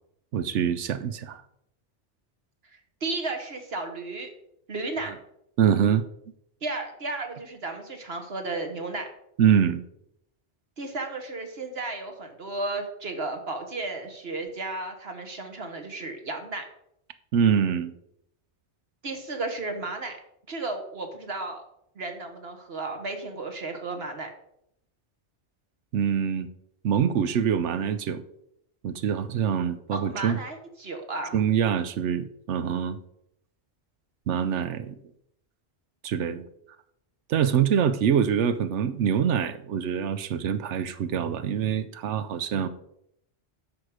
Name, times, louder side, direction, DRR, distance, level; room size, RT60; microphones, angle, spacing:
voice 1, 0.3-1.4 5.6-6.1 9.4-9.8 17.3-17.9 25.9-26.5 26.8-28.2 28.8-30.4 31.3-33.0 34.3-35.0 36.0-36.4 37.3-42.7, right 8 dB, 85° right, 11 dB, 1.0 m, -24 dB
voice 2, 3.0-4.3 4.7-5.1 6.6-9.1 10.8-16.6 19.0-20.1 20.5-21.6 21.9-24.3 29.9-31.3, right 3 dB, 60° right, 4 dB, 1.6 m, -33 dB
10.5 x 6.4 x 4.9 m, 0.77 s
omnidirectional pair, 1.2 m